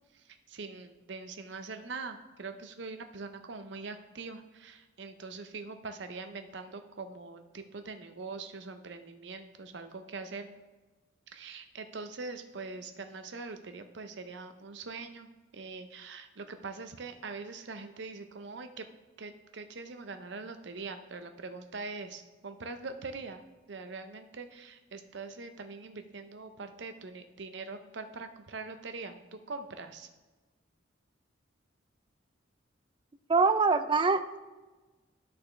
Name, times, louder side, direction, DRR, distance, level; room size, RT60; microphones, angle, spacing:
voice 1, 0.1-10.5 11.3-18.9 19.2-23.4 23.7-30.1, right 4 dB, 65° right, 7 dB, 0.6 m, -43 dB
voice 2, 33.3-34.4, right 4 dB, 25° right, 9 dB, 0.4 m, -24 dB
12.5 x 4.2 x 3.2 m, 1.2 s
head